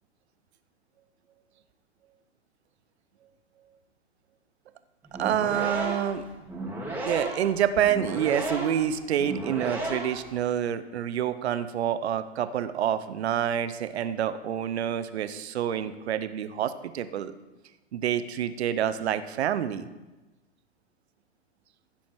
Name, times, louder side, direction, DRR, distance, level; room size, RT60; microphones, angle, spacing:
sound 1, 5.1-10.3, right 1 dB, 5° right, 2.6 m, -34 dB
voice 1, 5.2-6.2 7.0-17.4 17.9-19.9, right 9 dB, 70° right, 12 dB, 0.9 m, -27 dB
15.5 x 7.2 x 4.6 m, 1.1 s
hypercardioid pair, 110°, 33 cm